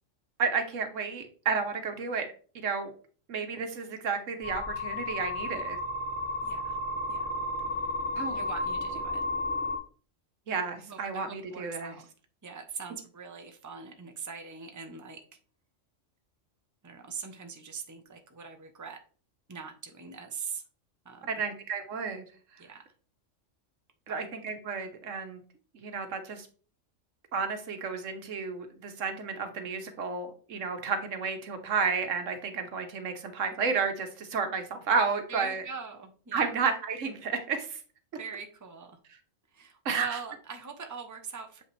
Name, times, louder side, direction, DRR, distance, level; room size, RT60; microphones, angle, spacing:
voice 1, 0.4-2.3 2.5-2.9 3.3-5.8 8.2-8.4 10.5-11.9 21.3-22.2 24.1-25.4 25.7-26.5 27.3-35.6 36.3-37.8 39.8-40.2, right 5 dB, 75° right, 7 dB, 1.3 m, -31 dB
sound 1, 4.4-9.8, left 2 dB, 5° left, 1.1 m, -33 dB
voice 2, 6.4-6.8 7.1-7.2 7.8-7.9 8.3-9.2 10.7-12.0 12.4-15.2 16.8-19.0 19.5-20.6 21.0-21.4 22.6-22.8 24.1-24.2 35.3-36.5 38.2-39.0 39.5-41.6, right 5 dB, 15° right, 5 dB, 0.8 m, -42 dB
7.4 x 5.4 x 3.2 m, 0.41 s
omnidirectional pair, 1.3 m